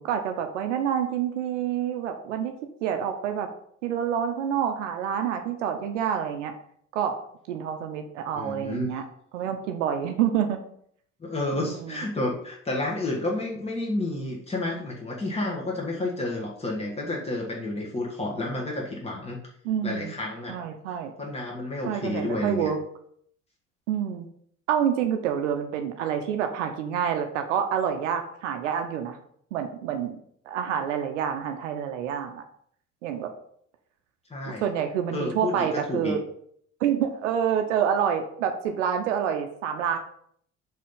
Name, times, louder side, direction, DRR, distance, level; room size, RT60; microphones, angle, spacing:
voice 1, 0.0-2.5 2.8-3.5 3.8-6.5 6.9-7.1 7.5-9.0 9.3-10.6 11.5-12.0 19.6-20.1 20.5-21.1 21.8-22.8 23.9-24.3 24.7-29.2 29.5-30.2 30.5-32.4 33.0-33.3 34.5-36.2 36.8-40.0, right 8 dB, 70° right, 6 dB, 0.7 m, -27 dB
voice 2, 8.3-8.9 11.2-19.4 19.8-20.6 21.2-22.7 34.3-34.7 35.1-36.2, left 2 dB, 15° left, -2 dB, 1.6 m, -30 dB
6.2 x 4.2 x 5.5 m, 0.65 s
figure-of-eight pair, 50°, 37 cm